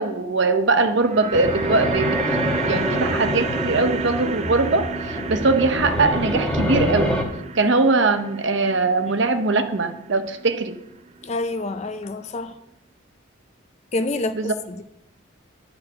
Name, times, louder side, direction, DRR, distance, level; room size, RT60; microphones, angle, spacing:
voice 1, 0.0-2.4 2.6-7.2 7.6-10.8 14.4-14.5, right 3 dB, 60° right, 0.7 m, -21 dB
sound 1, 0.7-11.0 11.2-11.3, right 5 dB, 30° right, 0.4 m, -31 dB
sound 2, 1.3-7.2, left 1 dB, 5° left, 1.0 m, -26 dB
voice 2, 11.2-12.6 13.9-14.8, left 2 dB, 35° left, 0.5 m, -28 dB
10.5 x 4.5 x 6.2 m
head